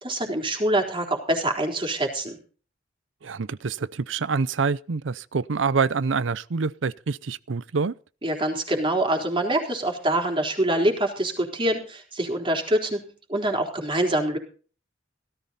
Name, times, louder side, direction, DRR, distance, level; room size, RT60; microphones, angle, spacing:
voice 1, 0.0-2.4 8.2-14.4, right 1 dB, 30° right, 4.0 m, -25 dB
voice 2, 3.2-7.9, right 5 dB, 80° right, 0.6 m, -26 dB
17.5 x 14.0 x 4.2 m
head